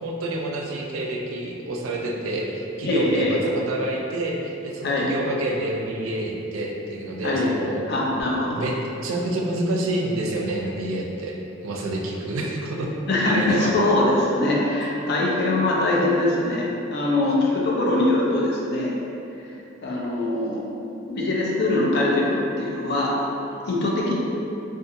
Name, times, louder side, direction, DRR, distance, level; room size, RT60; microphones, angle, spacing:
voice 1, 0.0-3.4 3.7-7.8 8.5-8.8 9.0-11.4 11.6-13.7, right 1 dB, 90° right, -1 dB, 0.4 m, -28 dB
voice 2, 2.8-3.4 4.8-5.1 7.2-7.5 7.9-8.7 13.1-18.9 19.8-20.6 21.1-23.1 23.7-24.1, left 2 dB, 55° left, -3 dB, 0.5 m, -22 dB
2.7 x 2.4 x 2.5 m, 2.8 s
head